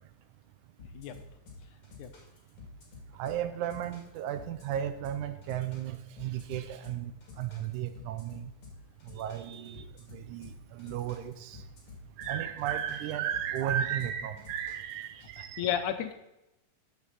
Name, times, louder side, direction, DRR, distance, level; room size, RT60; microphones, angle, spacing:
sound 1, 0.8-15.0, left 3 dB, 45° left, 3.2 m, -50 dB
voice 1, 3.2-7.1 7.4-8.5 9.1-9.8 10.1-11.6 12.2-15.6, right 10 dB, 80° right, 10 dB, 2.1 m, -34 dB
voice 2, 15.4-16.1, left 9 dB, 80° left, 8 dB, 2.1 m, -32 dB
10.5 x 7.1 x 4.1 m, 0.90 s
omnidirectional pair, 3.6 m